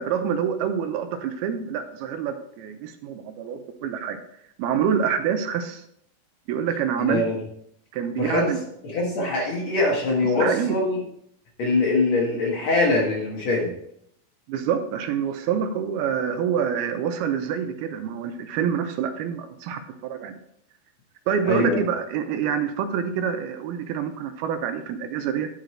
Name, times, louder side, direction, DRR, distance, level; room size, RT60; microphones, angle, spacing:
voice 1, 0.0-4.2 4.6-5.8 6.5-7.2 7.9-8.6 10.4-10.8 14.5-20.3 21.3-25.5, right 7 dB, 85° right, 7 dB, 2.6 m, -26 dB
voice 2, 7.1-7.4 8.2-11.0 11.6-13.7 21.4-21.8, left 2 dB, 55° left, -2 dB, 2.3 m, -23 dB
10.5 x 5.2 x 4.4 m, 0.72 s
omnidirectional pair, 4.5 m